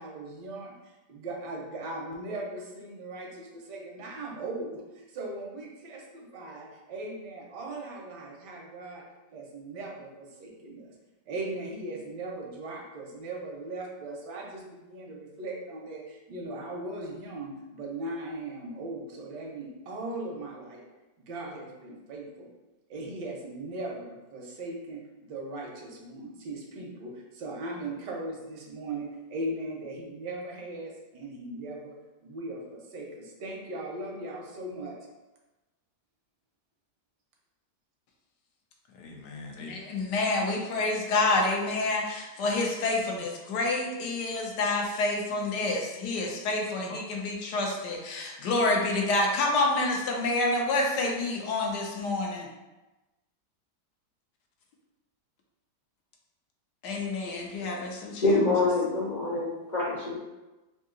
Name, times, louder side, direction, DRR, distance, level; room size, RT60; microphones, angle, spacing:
voice 1, 0.0-9.1 9.3-10.9 11.3-20.8 21.3-22.5 22.9-32.0 32.2-35.0, right 2 dB, 80° right, -1 dB, 1.4 m, -38 dB
voice 2, 39.0-52.5 56.8-58.2, left 2 dB, 75° left, 1 dB, 1.3 m, -28 dB
voice 3, 58.2-60.1, left 2 dB, 60° left, -6 dB, 0.5 m, -25 dB
3.8 x 2.7 x 3.7 m, 1.1 s
omnidirectional pair, 1.8 m